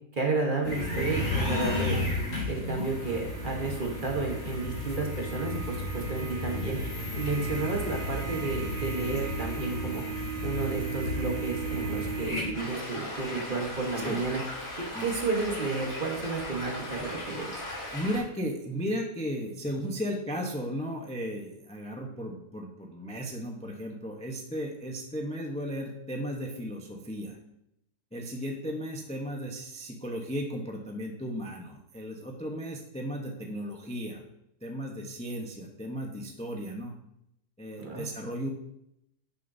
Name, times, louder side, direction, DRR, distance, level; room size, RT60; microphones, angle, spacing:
voice 1, 0.2-2.1 2.5-10.0 10.4-14.4 14.8-17.5 37.8-38.1, right 3 dB, 35° right, 0 dB, 1.3 m, -32 dB
sound 1, 0.6-12.5, equal, 50° left, 4.1 m, -33 dB
Stream, 12.5-18.2, left 1 dB, 80° left, 4.0 m, -38 dB
voice 2, 17.9-27.4 28.1-34.2 34.6-36.9 37.6-38.5, equal, 5° left, 1 dB, 0.6 m, -35 dB
11.0 x 6.7 x 2.7 m, 0.78 s
omnidirectional pair, 1.7 m